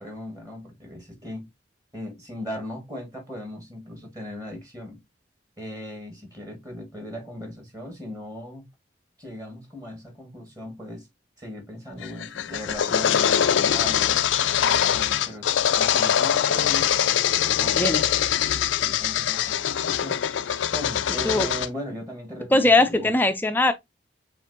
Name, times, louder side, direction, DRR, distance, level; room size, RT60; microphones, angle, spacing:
voice 1, 0.0-1.5 1.9-5.0 5.6-8.6 9.2-11.1 11.4-14.2 14.9-15.5 15.8-16.9 17.3-17.9 18.7-20.2 20.7-23.2, left 1 dB, 20° right, 1.6 m, -38 dB
sound 1, 12.0-21.7, left 9 dB, 80° left, 0.4 m, -23 dB
voice 2, 22.5-23.7, left 2 dB, 10° left, 0.4 m, -20 dB
7.2 x 2.5 x 2.6 m
head